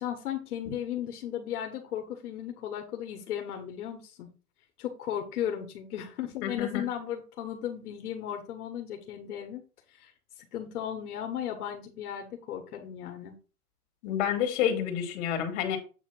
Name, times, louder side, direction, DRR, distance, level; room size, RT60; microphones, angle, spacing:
voice 1, 0.0-4.3 4.8-9.6 10.0-10.1 10.5-13.3, left 10 dB, 80° left, 4 dB, 1.6 m, -35 dB
voice 2, 6.4-6.9 14.0-15.8, left 9 dB, 50° left, 4 dB, 2.3 m, -29 dB
8.2 x 2.9 x 6.1 m, 0.35 s
supercardioid pair, 165°, 44 cm